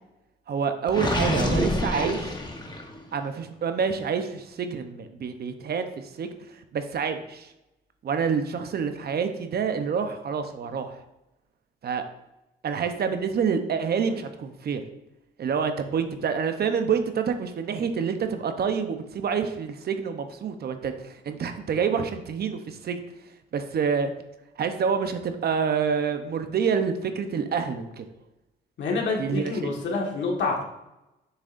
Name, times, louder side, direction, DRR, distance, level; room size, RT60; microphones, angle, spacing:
voice 1, 0.5-2.4 3.1-7.5 8.0-11.0 11.8-12.0 12.6-14.8 15.4-23.0 23.5-24.1 24.6-28.0 29.2-29.7, right 6 dB, 55° right, 8 dB, 0.8 m, -27 dB
Gurgling, 0.9-3.0, left 1 dB, 20° left, 1.1 m, -27 dB
voice 2, 28.8-30.6, left 3 dB, 65° left, 0 dB, 1.7 m, -27 dB
7.5 x 6.5 x 2.6 m, 0.92 s
cardioid pair, 90°, 20 cm